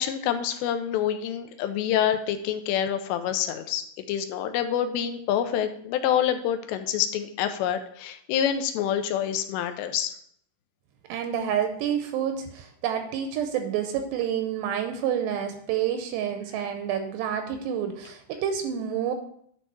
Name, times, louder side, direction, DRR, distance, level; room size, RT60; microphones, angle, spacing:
voice 1, 0.0-10.1, left 9 dB, 85° left, 8 dB, 2.8 m, -27 dB
voice 2, 11.1-19.1, right 9 dB, 85° right, 6 dB, 2.6 m, -28 dB
10.0 x 4.4 x 4.6 m, 0.65 s
omnidirectional pair, 5.2 m